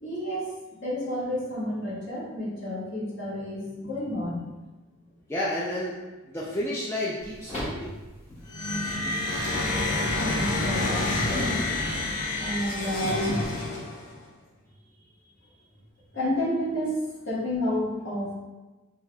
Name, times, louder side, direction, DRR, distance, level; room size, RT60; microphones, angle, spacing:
voice 1, 0.0-0.5 0.8-4.4 9.2-9.4 10.2-11.6 12.4-13.4 16.1-18.3, equal, 50° left, -7 dB, 1.2 m, -30 dB
voice 2, 5.3-6.0 6.3-7.9, left 1 dB, 10° left, -7 dB, 0.3 m, -31 dB
sound 1, 7.2-13.7, left 1 dB, 30° left, 1.1 m, -42 dB
sound 2, 8.5-14.1, left 2 dB, 85° left, 0.7 m, -28 dB
5.5 x 2.3 x 2.2 m, 1.2 s
head